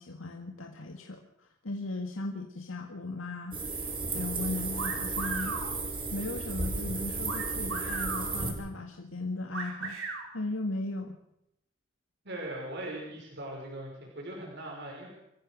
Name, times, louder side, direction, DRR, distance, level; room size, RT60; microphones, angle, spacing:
voice 1, 0.0-5.6 6.1-10.0 10.3-11.2, left 2 dB, 80° left, 3 dB, 2.0 m, -37 dB
sound 1, 3.5-8.5, right 3 dB, 30° right, 5.4 m, -34 dB
sound 2, 4.7-5.7 7.2-8.3 9.5-10.2, right 4 dB, 90° right, 5.9 m, -36 dB
voice 2, 12.2-15.1, right 1 dB, 60° right, -1 dB, 5.7 m, -40 dB
26.5 x 15.0 x 6.5 m, 0.82 s
head